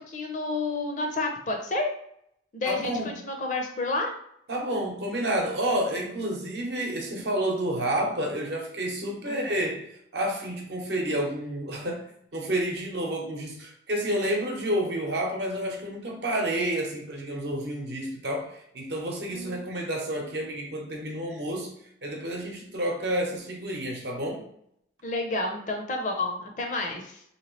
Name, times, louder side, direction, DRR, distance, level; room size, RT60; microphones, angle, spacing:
voice 1, 0.1-1.9 2.5-4.1 9.2-9.5 19.3-19.6 25.0-27.2, left 2 dB, 40° left, 2 dB, 0.5 m, -30 dB
voice 2, 2.6-3.1 4.5-12.0 12.3-21.8 22.0-24.5, right 1 dB, 60° right, 1 dB, 0.8 m, -30 dB
3.2 x 2.9 x 3.1 m, 0.71 s
head